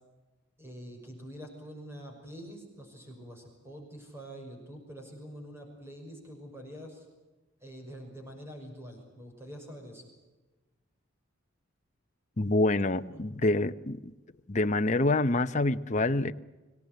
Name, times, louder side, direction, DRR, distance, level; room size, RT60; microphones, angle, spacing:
voice 1, 0.6-7.0 7.6-10.1 13.1-13.3, equal, 10° right, 2 dB, 5.9 m, -46 dB
voice 2, 12.4-14.1 14.5-16.3, left 2 dB, 35° left, 9 dB, 0.8 m, -26 dB
25.5 x 17.5 x 9.4 m, 1.1 s
head